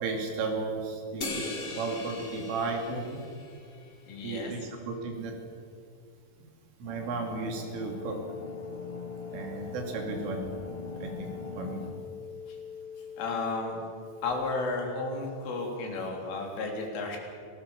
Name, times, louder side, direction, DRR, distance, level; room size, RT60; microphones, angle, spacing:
voice 1, 0.0-3.2 4.2-5.4 6.8-8.2 9.3-10.5 11.0-11.8, right 3 dB, 90° right, 2 dB, 5.6 m, -34 dB
sound 1, 1.2-3.9, left 3 dB, 60° left, 0.9 m, -39 dB
voice 2, 4.1-4.5 11.5-11.8 12.5-12.6 13.2-13.8 14.2-17.2, left 3 dB, 85° left, 1 dB, 6.1 m, -33 dB
sound 2, 6.8-11.9, left 3 dB, 15° left, 2.0 m, -43 dB
sound 3, 7.7-16.2, left 7 dB, 15° right, 5.5 m, -44 dB
27.0 x 18.5 x 7.2 m, 2.3 s
omnidirectional pair, 5.5 m